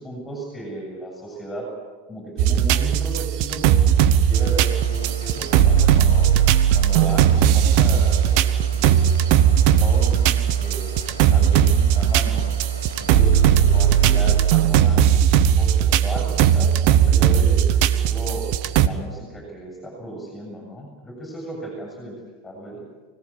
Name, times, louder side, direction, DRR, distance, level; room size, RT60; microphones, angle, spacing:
voice 1, 0.0-1.7 2.1-6.3 6.7-9.2 9.5-12.5 13.0-15.1 15.6-18.5 18.8-22.2 22.4-22.9, right 1 dB, 15° left, 1 dB, 7.2 m, -35 dB
sound 1, 2.4-18.9, right 9 dB, 50° right, 1.1 m, -18 dB
sound 2, 4.3-14.6, left 2 dB, 90° left, 2.0 m, -40 dB
25.0 x 18.0 x 8.8 m, 1.5 s
figure-of-eight pair, 85°, 0 cm